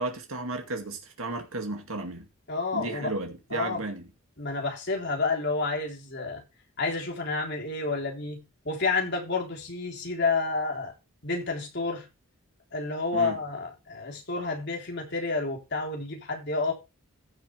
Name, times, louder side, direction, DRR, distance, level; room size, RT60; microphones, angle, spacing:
voice 1, 0.0-2.3 2.7-4.1 13.1-13.4, right 2 dB, 70° right, 2.2 m, -34 dB
voice 2, 2.5-3.1 3.5-3.8 4.4-6.4 6.8-8.4 8.7-10.9 11.2-12.1 12.7-16.7, left 3 dB, 50° left, 3.6 m, -30 dB
15.5 x 6.9 x 3.3 m
head